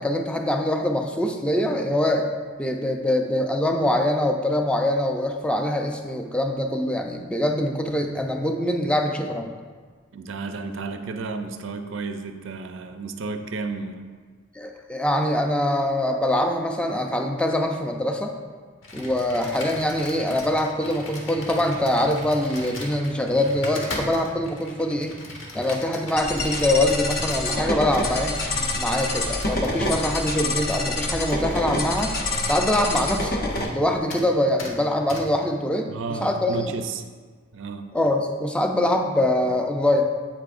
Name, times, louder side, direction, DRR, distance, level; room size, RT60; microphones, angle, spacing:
voice 1, 0.0-2.3 2.6-9.5 14.6-18.3 18.9-25.2 25.5-32.1 32.4-33.4 33.7-36.6 37.9-40.0, left 1 dB, 5° left, 3 dB, 0.5 m, -24 dB
voice 2, 10.1-14.1 35.9-37.0 37.5-38.0, right 4 dB, 65° right, 6 dB, 0.5 m, -32 dB
Computer keyboard, 18.8-33.8 34.1-34.3 34.6-34.7 35.1-35.2, left 1 dB, 70° left, 1.3 m, -38 dB
sound 1, 26.2-33.7, left 2 dB, 45° left, 0.8 m, -27 dB
8.5 x 8.1 x 2.5 m, 1.5 s
head